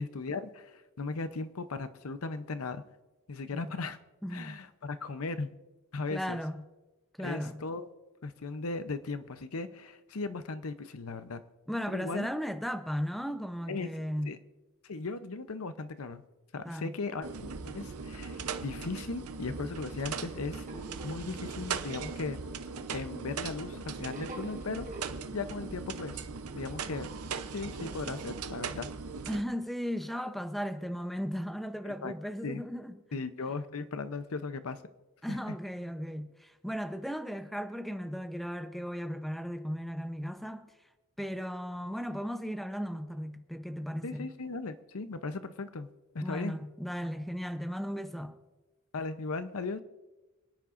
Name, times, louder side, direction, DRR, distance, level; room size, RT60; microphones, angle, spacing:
voice 1, 0.0-2.8 3.3-4.0 4.3-5.5 5.9-6.4 7.2-7.9 8.2-11.4 11.9-12.3 13.7-13.9 14.2-14.4 14.8-16.2 16.5-20.7 21.0-22.4 22.9-24.9 25.3-26.3 26.5-27.1 27.5-28.9 31.8-32.1 32.4-32.6 33.1-34.8 35.3-35.6 44.0-45.9 46.1-46.6 48.9-49.8, left 3 dB, 70° left, 0.7 m, -37 dB
voice 2, 4.2-4.6 6.1-6.6 7.2-7.6 11.7-14.4 16.6-16.9 29.3-33.2 35.2-40.7 41.2-44.3 46.2-48.3, equal, ahead, 0.7 m, -36 dB
sound 1, 17.2-29.4, right 5 dB, 80° right, 0.8 m, -39 dB
sound 2, 20.7-21.7 24.0-25.1, right 2 dB, 35° right, 1.4 m, -45 dB
29.0 x 9.7 x 2.6 m
head